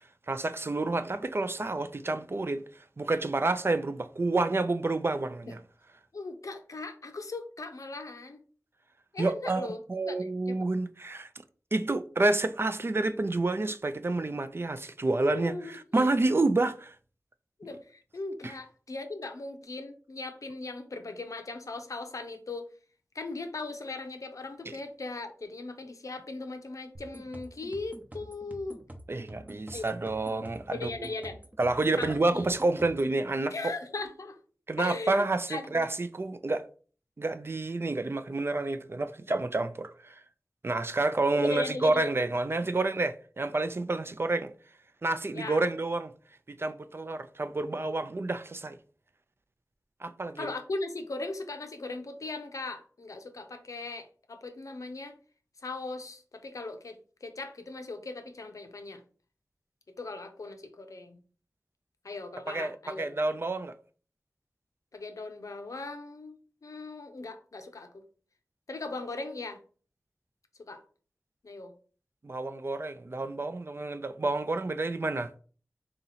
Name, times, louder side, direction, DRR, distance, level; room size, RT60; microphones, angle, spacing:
voice 1, 0.3-5.6 9.2-11.3 11.7-17.0 18.4-18.5 24.7-24.8 29.1-30.9 31.6-33.7 34.7-36.6 37.2-40.2 40.6-44.5 45.0-46.1 46.5-48.8 50.0-50.5 62.5-63.7 72.2-75.3, right 2 dB, 45° right, 0.4 m, -29 dB
voice 2, 6.1-8.4 9.1-10.7 15.3-16.1 17.6-22.7 23.1-28.8 29.7-29.9 30.7-31.4 32.0-32.5 33.5-34.4 34.8-35.9 41.4-42.1 45.3-45.6 50.4-55.2 55.6-59.0 60.0-61.2 62.0-63.2 64.9-68.0 68.7-69.6 70.7-70.8 71.4-71.7, left 3 dB, 85° left, 0.6 m, -39 dB
sound 1, 26.9-33.1, right 1 dB, 30° right, 0.8 m, -47 dB
3.8 x 2.9 x 4.0 m
wide cardioid pair, 65°, 6 cm